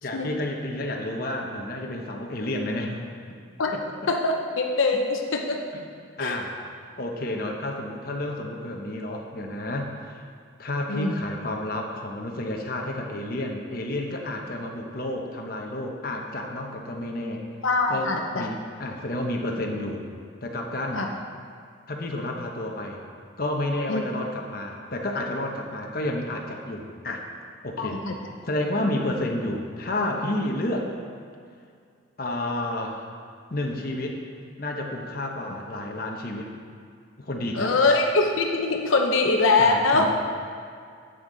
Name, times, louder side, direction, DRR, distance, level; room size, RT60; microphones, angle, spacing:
voice 1, 0.0-3.0 3.7-3.8 5.7-5.8 6.2-6.5 7.0-10.3 10.6-17.4 17.9-20.0 20.4-21.1 21.9-23.0 23.4-27.2 27.6-28.2 28.4-30.9 32.2-33.1 33.5-34.2 34.6-36.5 37.2-37.7 39.6-40.1, left 1 dB, 45° left, 1 dB, 1.0 m, -30 dB
voice 2, 4.1-5.6 6.2-6.3 10.9-11.2 17.6-18.5 20.9-21.1 23.9-24.0 27.8-28.1 37.5-40.1, left 3 dB, 85° left, 2 dB, 0.8 m, -23 dB
11.0 x 8.0 x 4.0 m, 2.2 s
head